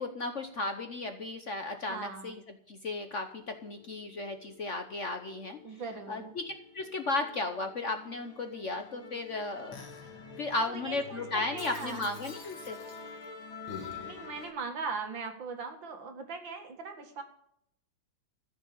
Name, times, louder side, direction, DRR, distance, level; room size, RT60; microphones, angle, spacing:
voice 1, 0.0-2.4 2.7-5.6 6.1-9.8 10.4-12.8, left 2 dB, 45° left, 6 dB, 1.0 m, -35 dB
voice 2, 1.9-2.3 5.6-6.3 10.6-12.1 14.0-17.2, right 4 dB, 70° right, 5 dB, 2.6 m, -40 dB
Musical instrument, 3.3-14.5, left 5 dB, 85° left, 2.6 m, -47 dB
15.0 x 6.4 x 8.6 m, 0.70 s
omnidirectional pair, 2.2 m